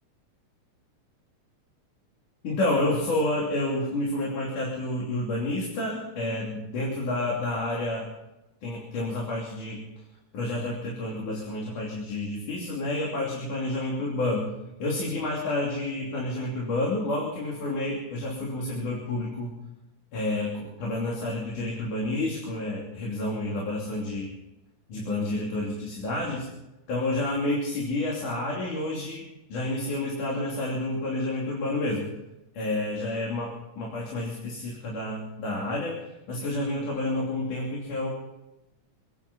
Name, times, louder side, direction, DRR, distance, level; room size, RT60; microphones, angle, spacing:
voice 1, 2.4-8.1 8.6-9.8 10.3-14.5 14.8-19.6 20.1-24.3 24.9-26.5 26.9-29.2 29.5-32.1 32.5-36.0 36.3-38.1, left 2 dB, 70° left, -4 dB, 4.5 m, -29 dB
26.5 x 9.9 x 5.4 m, 0.96 s
omnidirectional pair, 3.7 m